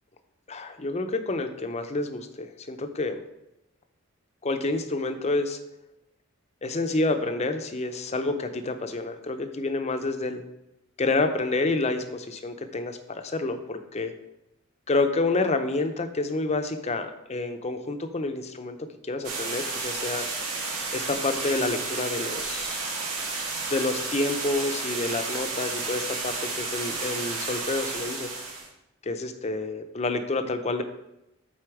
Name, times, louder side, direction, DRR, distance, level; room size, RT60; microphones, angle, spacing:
voice 1, 0.5-3.2 4.4-5.6 6.6-10.4 11.0-14.1 14.9-18.8 19.0-20.3 20.9-22.8 23.7-28.3 29.0-30.8, left 2 dB, 30° left, 8 dB, 0.5 m, -28 dB
sound 1, 19.2-28.7, right 4 dB, 85° right, 1.9 m, -32 dB
7.7 x 4.3 x 4.8 m, 0.88 s
head